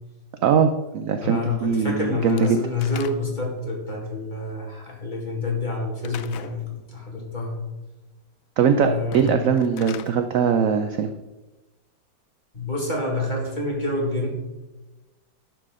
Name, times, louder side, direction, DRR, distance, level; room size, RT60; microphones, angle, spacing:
voice 1, 0.4-2.6 8.6-11.1, right 7 dB, 70° right, 8 dB, 0.8 m, -21 dB
voice 2, 1.2-7.6 8.8-9.6 12.5-14.4, left 2 dB, 25° left, -2 dB, 2.1 m, -28 dB
Slam / Wood, 2.2-3.5 6.0-6.6 9.0-10.1, left 9 dB, 70° left, 0.8 m, -40 dB
10.5 x 7.0 x 3.7 m, 1.1 s
omnidirectional pair, 1.9 m